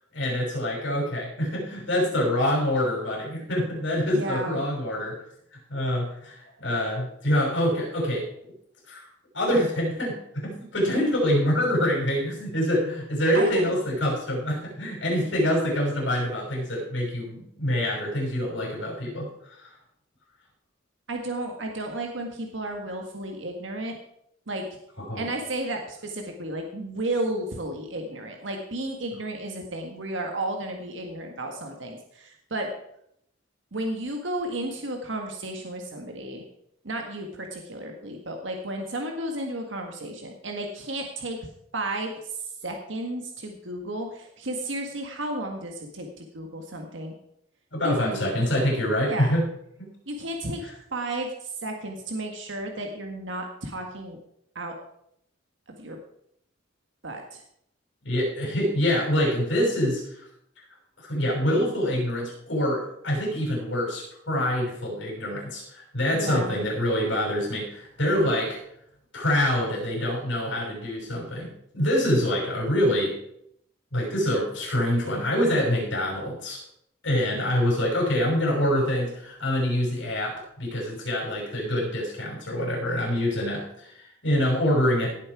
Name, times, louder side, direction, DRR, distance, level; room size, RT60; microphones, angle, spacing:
voice 1, 0.1-5.2 5.7-8.3 8.9-9.1 9.3-19.3 19.6-19.7 25.0-25.3 47.7-49.4 49.8-49.9 58.0-60.3 61.0-68.6 69.1-73.2 73.9-76.6 77.0-85.1, equal, 75° left, -2 dB, 6.2 m, -25 dB
voice 2, 4.1-4.6 13.3-13.7 21.1-23.9 24.5-24.7 25.1-32.7 33.7-36.4 36.8-41.4 41.7-47.1 47.8-48.4 49.0-49.3 50.1-50.6 50.9-54.2 54.5-54.7 55.7-56.0 57.0-57.4 66.1-66.6, right 1 dB, 75° right, 3 dB, 1.6 m, -33 dB
17.0 x 7.6 x 4.8 m, 0.73 s
head